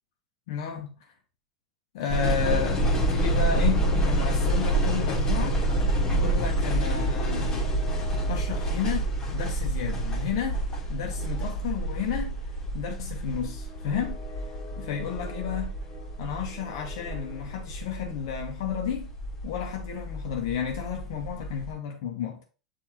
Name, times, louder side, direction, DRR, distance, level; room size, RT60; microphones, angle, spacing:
voice 1, 0.5-1.0 1.9-5.6 6.1-7.7 8.3-10.6 10.9-12.4 12.7-14.2 14.8-15.7 16.2-19.1 19.4-22.4, left 8 dB, 55° left, 0.7 m, -32 dB
sound 1, 2.1-21.7, right 1 dB, 25° left, 1.2 m, -28 dB
7.1 x 2.6 x 2.8 m
figure-of-eight pair, 85°, 3 cm